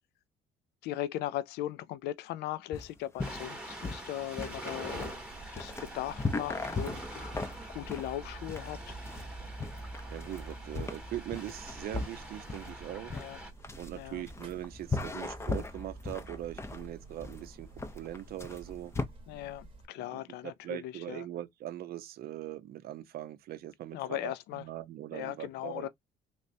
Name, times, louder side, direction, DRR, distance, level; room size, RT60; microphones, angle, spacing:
voice 1, 0.8-5.2 5.5-7.3 7.7-9.0 13.1-13.4 13.9-14.2 19.3-21.3 23.9-24.6 25.1-25.9, left 13 dB, 75° left, 0.4 m, -38 dB
sound 1, 2.7-19.0, left 3 dB, 15° left, 0.5 m, -38 dB
Ocean, 3.2-13.5, right 1 dB, 5° right, 1.0 m, -45 dB
Buzz, 4.8-19.9, right 2 dB, 30° right, 0.9 m, -49 dB
voice 2, 10.1-13.1 13.8-17.7 17.9-18.9 20.0-25.9, right 12 dB, 65° right, 0.6 m, -41 dB
3.3 x 3.1 x 2.6 m
cardioid pair, 110°, 17 cm